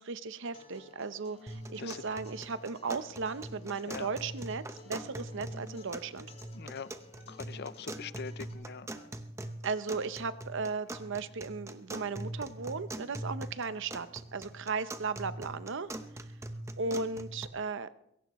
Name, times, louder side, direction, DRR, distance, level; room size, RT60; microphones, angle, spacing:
voice 1, 0.0-6.3 9.6-15.9 16.8-17.9, right 4 dB, 60° right, 13 dB, 0.7 m, -36 dB
Acoustic guitar, 0.5-8.5, left 3 dB, 30° left, 3.9 m, -55 dB
sound 1, 1.5-17.5, right 1 dB, 15° right, 0.8 m, -43 dB
sound 2, 4.8-5.0 5.3-6.8 7.1-8.2 8.5-9.6 9.9-11.0 11.3-11.5, equal, 65° left, 3.4 m, -61 dB
voice 2, 6.5-6.9 7.3-8.9, left 6 dB, 50° left, 16 dB, 0.5 m, -42 dB
21.0 x 17.5 x 3.1 m, 0.79 s
head